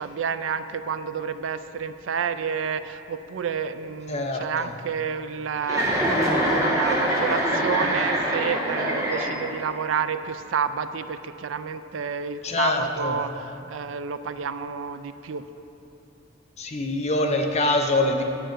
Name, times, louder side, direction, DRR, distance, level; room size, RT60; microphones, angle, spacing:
voice 1, 0.0-15.4, right 6 dB, 70° right, 11 dB, 0.4 m, -30 dB
voice 2, 4.1-4.7 12.4-13.2 16.6-18.2, left 2 dB, 35° left, 3 dB, 0.6 m, -24 dB
Chuckle chortle, 5.6-9.7, equal, 15° right, 1.3 m, -24 dB
9.0 x 7.6 x 5.1 m, 2.9 s
head